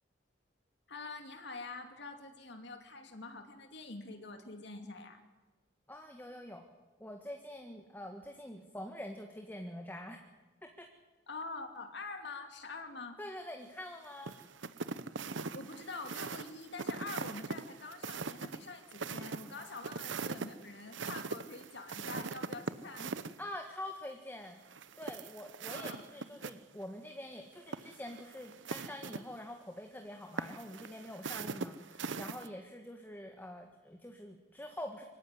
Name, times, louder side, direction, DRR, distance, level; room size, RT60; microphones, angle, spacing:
voice 1, 0.9-5.2 11.3-13.2 15.5-23.2 25.7-26.0, left 3 dB, 65° left, 5 dB, 2.6 m, -45 dB
voice 2, 5.9-6.6 7.0-10.2 10.8-10.9 13.2-14.3 19.6-19.7 23.4-24.6 24.9-35.0, left 1 dB, 10° left, 3 dB, 1.7 m, -45 dB
sound 1, 14.2-23.3 24.7-26.5 26.8-26.9 27.6-29.2 30.4-32.5, right 4 dB, 75° right, 0.9 m, -41 dB
25.0 x 16.0 x 9.7 m, 1.2 s
head